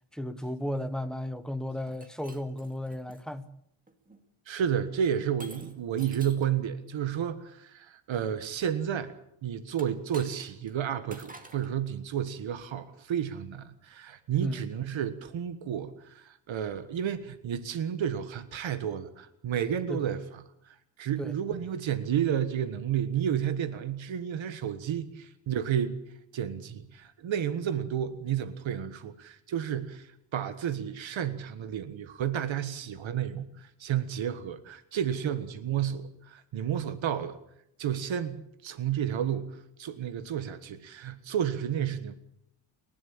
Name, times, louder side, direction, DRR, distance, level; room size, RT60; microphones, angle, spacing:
voice 1, 0.1-3.6 14.4-14.7 19.9-20.1 21.2-21.3 35.2-35.4, left 1 dB, ahead, 1.2 m, -34 dB
Shatter, 1.8-3.2 3.9-4.2 5.4-6.6 9.7-10.7 11.1-11.7, right 2 dB, 20° right, 2.3 m, -49 dB
voice 2, 4.5-9.1 9.4-20.2 20.6-26.0 26.3-37.4 37.8-42.3, right 9 dB, 75° right, 1.5 m, -31 dB
29.5 x 12.5 x 8.8 m
wide cardioid pair, 165°, 46 cm